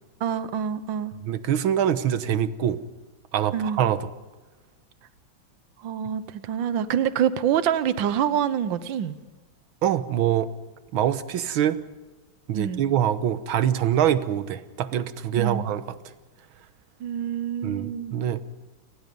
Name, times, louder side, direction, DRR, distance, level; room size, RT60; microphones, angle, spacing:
voice 1, 0.2-1.1 3.5-3.8 5.8-9.2 12.5-12.8 15.3-15.6 17.0-18.2, right 9 dB, 75° right, 13 dB, 1.6 m, -26 dB
voice 2, 1.2-2.8 3.3-4.1 9.8-10.5 10.9-11.8 12.5-15.8 17.6-18.4, right 10 dB, 90° right, 13 dB, 1.8 m, -24 dB
29.5 x 19.0 x 5.4 m, 1.2 s
omnidirectional pair, 2.2 m